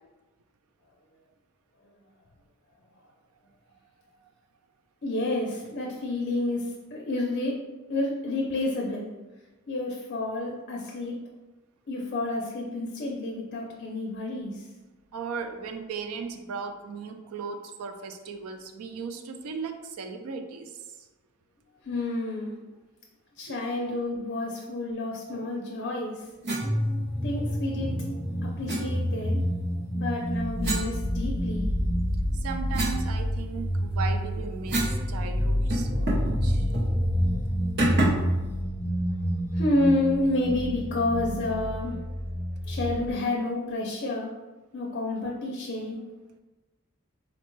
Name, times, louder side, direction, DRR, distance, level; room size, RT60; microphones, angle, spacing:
voice 1, 5.0-7.6 7.9-9.1 9.7-11.2 11.9-14.7 21.8-22.5 23.4-26.3 27.2-28.0 28.4-29.4 29.9-31.7 38.3-38.5 39.0-42.1 42.6-44.3 44.7-46.0, left 2 dB, 45° left, -1 dB, 0.4 m, -30 dB
voice 2, 15.1-21.1 23.5-23.8 32.3-36.7, right 5 dB, 85° right, 6 dB, 0.4 m, -37 dB
sound 1, 26.4-26.7 28.7-28.8 30.6-31.7 32.1-35.0 35.3-35.4 35.7-36.4 36.7-36.9 37.8-38.3, right 1 dB, 55° right, 0.7 m, -30 dB
sound 2, 26.6-43.1, equal, 10° right, 0.7 m, -28 dB
4.0 x 2.1 x 3.0 m, 1.2 s
head